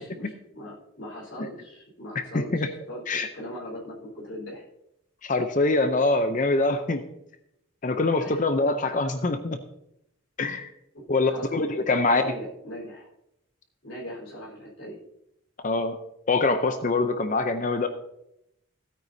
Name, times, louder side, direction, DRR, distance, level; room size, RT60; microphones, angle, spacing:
voice 1, 0.0-4.6 8.2-8.4 10.9-13.1 13.8-15.0, equal, 60° left, -5 dB, 4.1 m, -39 dB
voice 2, 2.2-2.7 3.1-3.3 5.2-7.0 7.8-9.6 10.4-10.7 11.1-12.3 15.6-16.0 16.3-17.9, left 3 dB, 35° left, 8 dB, 0.6 m, -24 dB
16.0 x 9.2 x 2.7 m, 0.80 s
head